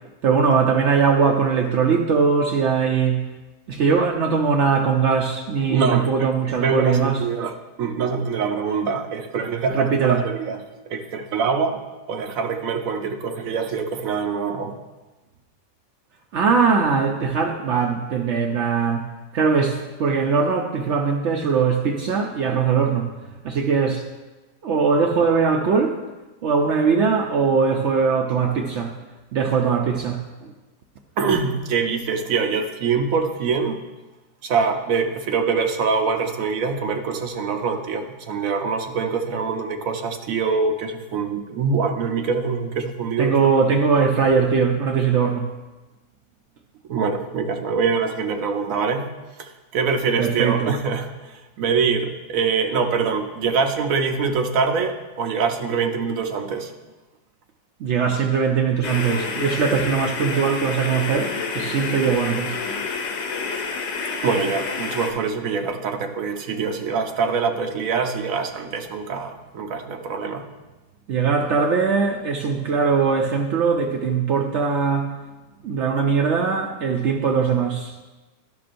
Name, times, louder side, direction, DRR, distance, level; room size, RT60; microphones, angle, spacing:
voice 1, 0.2-3.3 3.7-7.2 9.7-10.2 16.3-23.2 23.4-24.1 24.6-26.0 26.4-29.0 29.3-30.5 43.2-45.5 50.2-50.8 57.8-62.6 71.1-75.2 75.6-78.0, right 5 dB, 90° right, 0.6 m, -21 dB
voice 2, 5.7-6.3 6.6-7.5 7.8-10.6 10.9-11.8 12.1-14.7 31.2-33.8 34.4-43.3 46.9-49.1 49.4-56.7 64.2-70.4, right 5 dB, 65° right, 0.9 m, -24 dB
sound 1, 58.8-65.1, left 4 dB, 90° left, 1.5 m, -28 dB
12.0 x 6.0 x 2.5 m
omnidirectional pair, 1.9 m